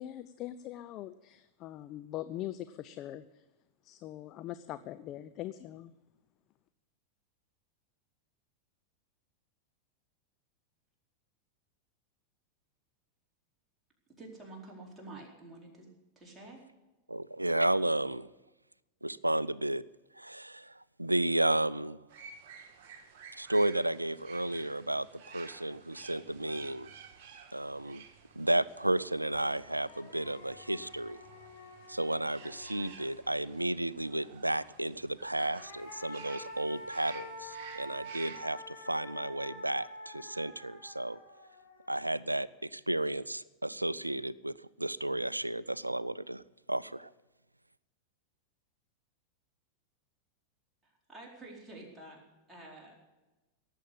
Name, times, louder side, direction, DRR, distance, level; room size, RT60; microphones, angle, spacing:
voice 1, 0.0-3.4 3.8-5.9, left 13 dB, 35° left, 12 dB, 0.5 m, -42 dB
voice 2, 14.2-15.9 16.2-16.6 50.8-52.2 52.5-52.9, right 2 dB, 10° right, -3 dB, 4.5 m, -49 dB
voice 3, 17.1-18.3 19.0-19.8 20.1-22.0 23.3-26.9 27.5-28.0 28.4-31.2 31.9-41.2 41.9-46.4 46.7-47.1, right 1 dB, 85° right, 21 dB, 0.4 m, -32 dB
sound 1, 22.1-38.4, right 7 dB, 45° right, 1.9 m, -53 dB
sound 2, 29.3-29.4 29.8-33.5 35.1-42.4, left 1 dB, 65° left, 3.8 m, -48 dB
18.0 x 7.6 x 8.7 m, 1.1 s
figure-of-eight pair, 90°, 0 cm